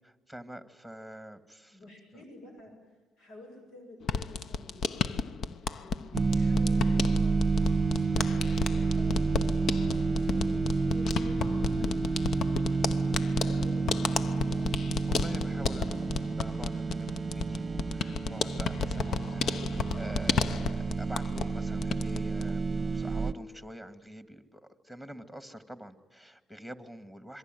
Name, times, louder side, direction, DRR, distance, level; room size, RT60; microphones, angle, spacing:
voice 1, 0.0-1.8 2.1-2.2 12.7-13.6 15.1-27.4, equal, 5° left, 9 dB, 2.0 m, -46 dB
voice 2, 1.7-7.4 8.1-12.1 13.0-15.2, left 1 dB, 90° left, 4 dB, 7.5 m, -51 dB
sound 1, 4.0-21.5 21.8-22.5, left 6 dB, 55° left, 1.0 m, -33 dB
sound 2, 6.1-23.3, right 4 dB, 25° right, 0.9 m, -29 dB
26.5 x 23.5 x 9.2 m, 1.2 s
cardioid pair, 115°, 0 cm